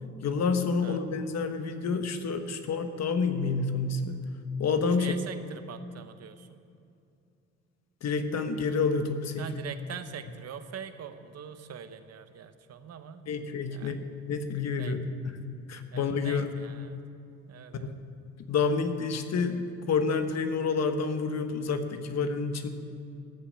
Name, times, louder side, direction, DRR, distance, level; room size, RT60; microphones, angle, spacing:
voice 1, 0.2-4.3 4.6-5.1 8.0-9.5 13.3-14.0 14.3-15.0 15.2-16.5 17.8-17.9 18.5-22.7, left 4 dB, 60° left, 8 dB, 1.2 m, -29 dB
voice 2, 5.0-6.6 9.4-13.3 13.7-14.0 14.8-15.0 15.9-17.0 17.5-17.9, right 8 dB, 55° right, 10 dB, 1.0 m, -43 dB
14.0 x 7.1 x 8.6 m, 2.5 s
cardioid pair, 90°, 30 cm